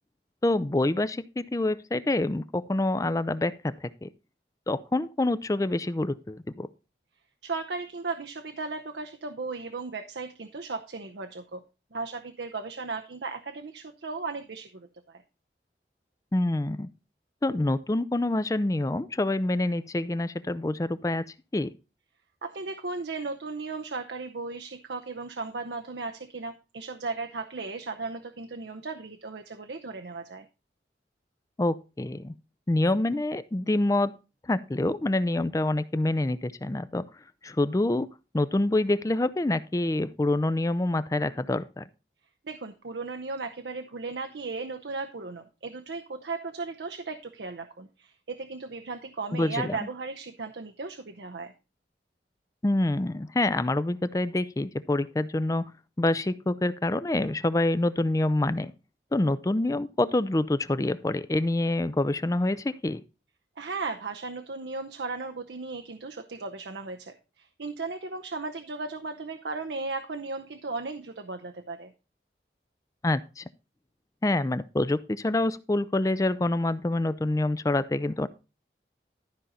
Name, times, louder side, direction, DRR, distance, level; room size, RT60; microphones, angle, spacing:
voice 1, 0.4-4.1 4.7-6.7 16.3-16.9 17.4-21.2 21.5-21.7 31.6-32.3 32.7-34.1 34.5-37.0 37.4-38.1 38.3-41.8 49.3-49.8 52.6-55.6 56.0-58.7 59.1-63.0 73.0-73.4 74.2-78.3, left 2 dB, 20° left, 15 dB, 0.4 m, -26 dB
voice 2, 7.4-11.6 11.9-15.2 22.4-30.4 42.4-51.5 63.6-71.9, right 3 dB, 80° right, 6 dB, 0.7 m, -36 dB
12.5 x 5.2 x 4.1 m, 0.30 s
head